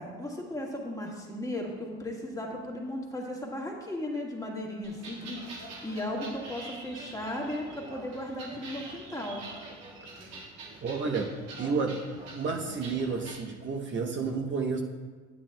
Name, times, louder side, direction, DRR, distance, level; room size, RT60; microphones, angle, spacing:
voice 1, 0.0-9.4, left 1 dB, 10° left, -2 dB, 1.6 m, -36 dB
sound 1, 4.8-13.4, right 2 dB, 85° right, 1.9 m, -45 dB
voice 2, 10.8-11.3 11.6-12.0 12.3-14.8, right 4 dB, 40° right, 1 dB, 0.8 m, -30 dB
8.9 x 8.6 x 2.2 m, 1.4 s
supercardioid pair, 85°, 30 cm